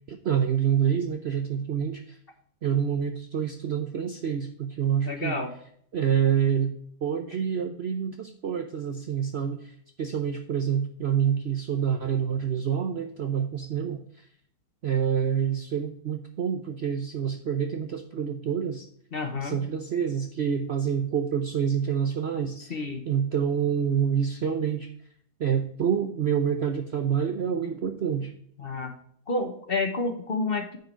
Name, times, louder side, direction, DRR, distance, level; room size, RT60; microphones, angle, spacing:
voice 1, 0.1-2.2 2.6-5.4 5.9-6.7 7.0-14.0 14.8-18.9 19.4-22.8 23.1-24.9 25.4-28.3, right 8 dB, 55° right, 6 dB, 0.7 m, -27 dB
voice 2, 5.1-5.5 19.1-19.6 22.6-23.0 28.6-28.9 29.3-30.8, left 3 dB, 40° left, 5 dB, 1.1 m, -29 dB
9.5 x 4.9 x 4.4 m, 0.64 s
omnidirectional pair, 1.8 m